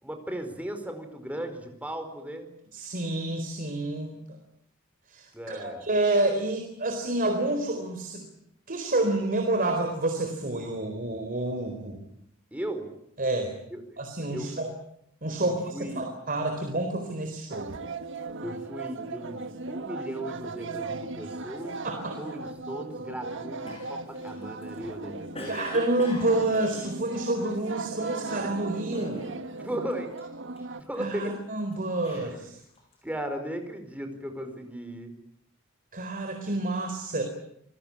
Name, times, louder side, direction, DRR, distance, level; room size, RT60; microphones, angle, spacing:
voice 1, 0.0-2.5 5.3-5.9 12.5-12.9 13.7-13.8 14.3-14.5 15.5-16.1 18.4-21.8 22.2-25.7 29.6-30.1 30.9-31.4 32.1-32.5 33.0-35.1, right 1 dB, 5° right, 6 dB, 4.6 m, -36 dB
voice 2, 2.7-4.1 5.1-8.3 8.7-12.0 13.2-13.5 14.0-14.7 15.2-17.7 21.8-22.2 25.5-29.2 31.0-32.6 35.9-37.2, right 2 dB, 40° right, 5 dB, 4.2 m, -28 dB
sound 1, 17.5-30.8, right 3 dB, 60° right, 1.7 m, -38 dB
Cough, 23.6-27.7 28.2-28.5 28.9-29.6 29.9-31.1 31.6-33.1, left 1 dB, 30° left, 7.8 m, -43 dB
28.0 x 21.0 x 8.8 m, 0.73 s
head